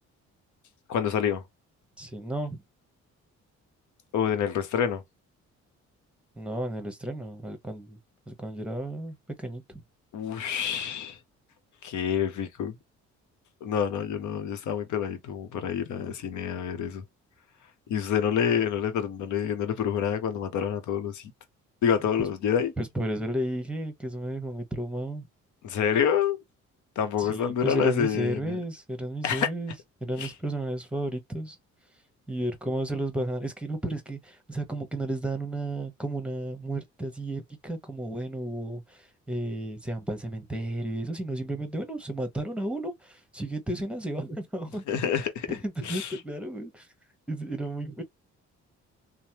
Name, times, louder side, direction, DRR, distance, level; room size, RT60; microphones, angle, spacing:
voice 1, 0.9-1.4 4.1-5.0 10.1-11.2 11.8-12.7 13.6-17.0 17.9-21.3 21.8-22.7 25.6-26.4 27.0-28.6 29.2-29.5 30.2-30.3 44.9-46.1, left 8 dB, 75° left, 0.8 m, -27 dB
voice 2, 2.0-2.6 6.4-8.0 8.3-9.8 22.8-25.3 27.2-29.7 30.0-31.6 32.3-44.8 45.5-46.9 47.3-48.0, right 1 dB, 5° right, 1.1 m, -33 dB
3.2 x 2.1 x 2.8 m
cardioid pair, 90°, 30 cm